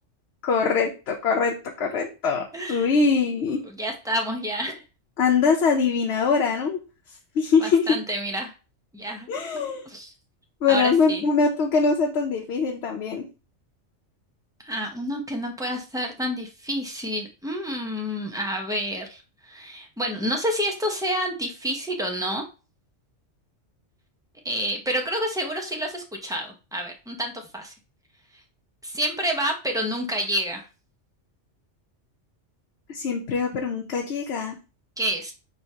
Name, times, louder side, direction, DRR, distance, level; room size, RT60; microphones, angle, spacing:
voice 1, 0.4-3.6 5.2-6.8 7.4-8.0 9.3-9.9 10.6-13.2 32.9-34.6, left 5 dB, 65° left, 1 dB, 0.9 m, -23 dB
voice 2, 2.5-2.9 3.5-4.8 7.6-8.5 8.9-9.3 9.9-10.1 10.7-11.2 14.6-22.4 24.4-27.7 28.8-30.6 35.0-35.3, equal, 5° right, 1 dB, 0.3 m, -29 dB
4.5 x 3.1 x 2.7 m, 0.32 s
omnidirectional pair, 1.2 m